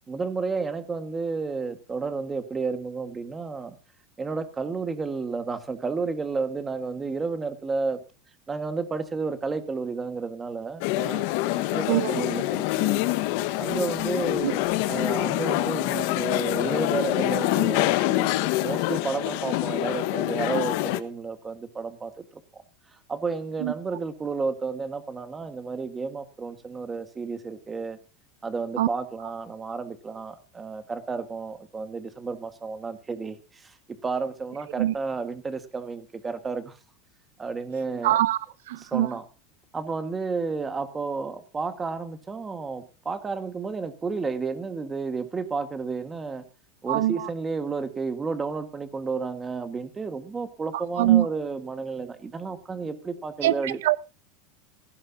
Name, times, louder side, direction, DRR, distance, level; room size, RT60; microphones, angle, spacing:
voice 1, 0.1-3.8 4.2-8.0 8.5-11.2 11.5-13.1 13.6-18.3 18.6-22.6 23.1-28.0 28.4-33.7 34.0-36.8 37.4-38.2 38.7-39.3 39.7-46.4 46.8-53.8, right 4 dB, 10° right, 1.5 m, -31 dB
sound 1, 10.8-21.0, left 17 dB, 50° left, 1.2 m, -26 dB
voice 2, 38.0-38.4 38.7-39.1 46.9-47.1 51.0-51.3 53.4-54.0, right 14 dB, 90° right, 1.0 m, -22 dB
18.0 x 15.5 x 2.7 m
supercardioid pair, 180°, 0 cm